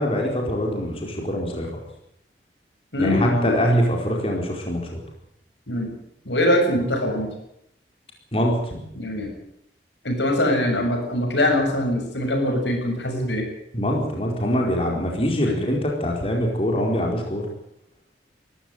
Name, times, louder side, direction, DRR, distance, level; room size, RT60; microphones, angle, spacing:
voice 1, 0.0-1.7 3.0-5.0 8.3-8.8 13.7-17.5, equal, 30° left, 0 dB, 4.5 m, -23 dB
voice 2, 2.9-3.6 5.7-5.9 6.3-7.3 9.0-9.3 10.0-13.5, left 1 dB, 90° left, 2 dB, 7.3 m, -22 dB
23.0 x 14.5 x 9.3 m, 0.74 s
head